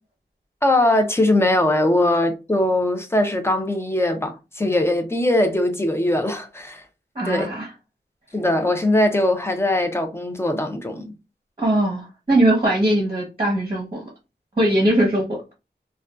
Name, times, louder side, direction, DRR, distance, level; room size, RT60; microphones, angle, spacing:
voice 1, 0.6-6.8 7.3-7.5 8.3-11.1, left 1 dB, 15° left, 0.5 m, -21 dB
voice 2, 7.1-7.7 11.6-14.0 14.6-15.4, right 1 dB, 30° right, 0.8 m, -20 dB
2.5 x 2.2 x 2.2 m
wide cardioid pair, 85°, 19 cm